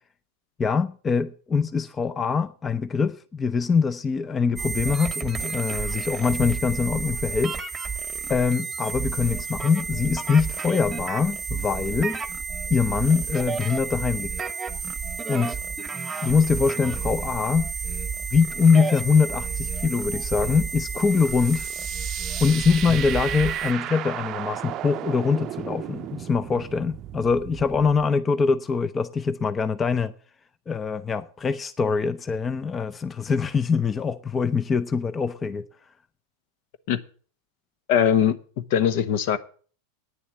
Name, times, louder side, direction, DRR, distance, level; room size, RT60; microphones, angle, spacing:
voice 1, 0.6-7.6 8.3-12.2 12.7-14.5 15.3-15.6 16.2-17.7 18.3-21.7 22.4-30.1 30.7-35.7, left 5 dB, 20° left, 0.6 m, -23 dB
sound 1, 4.6-23.7, right 5 dB, 15° right, 1.1 m, -31 dB
sound 2, 20.9-28.1, right 13 dB, 40° right, 0.6 m, -35 dB
voice 2, 37.9-38.4 38.7-39.4, left 9 dB, 60° left, 1.0 m, -20 dB
9.4 x 7.1 x 8.4 m
hypercardioid pair, 110°, 0 cm